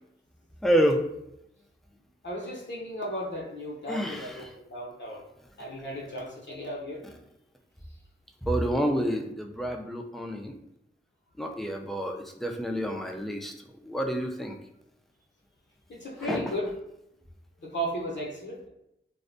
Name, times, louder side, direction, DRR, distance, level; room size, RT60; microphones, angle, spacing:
voice 1, 0.6-1.0 3.9-4.5 8.4-10.6 11.4-13.5 13.8-14.6 16.2-16.5, equal, ahead, 2 dB, 0.4 m, -28 dB
voice 2, 2.2-5.2 5.6-7.0 15.9-16.7 17.6-18.7, equal, 60° left, -3 dB, 0.7 m, -35 dB
2.5 x 2.1 x 2.5 m, 0.81 s
wide cardioid pair, 40°, 21 cm